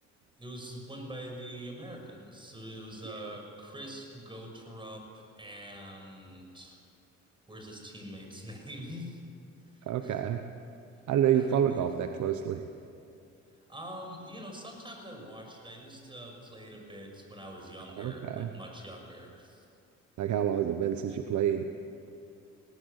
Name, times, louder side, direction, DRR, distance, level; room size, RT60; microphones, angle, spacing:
voice 1, 0.4-6.8 7.5-9.2 9.7-10.2 11.3-11.9 13.6-19.7, equal, 15° right, 2 dB, 6.2 m, -44 dB
voice 2, 9.9-10.4 11.1-12.6 18.0-18.5 20.2-21.7, right 9 dB, 75° right, 7 dB, 1.1 m, -28 dB
20.0 x 18.5 x 8.4 m, 2.5 s
cardioid pair, 90°, 30 cm